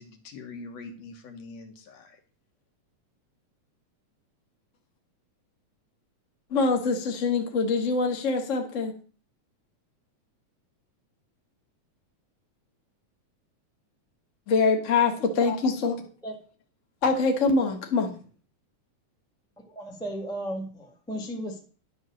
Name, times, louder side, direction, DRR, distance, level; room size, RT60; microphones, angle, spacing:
voice 1, 0.0-2.2, left 3 dB, 65° left, 5 dB, 2.3 m, -43 dB
voice 2, 6.5-8.9 14.5-16.0 17.0-18.1, left 4 dB, 45° left, 3 dB, 1.0 m, -24 dB
voice 3, 19.7-21.6, equal, ahead, 1 dB, 0.9 m, -35 dB
10.5 x 5.3 x 6.3 m, 0.40 s
omnidirectional pair, 3.4 m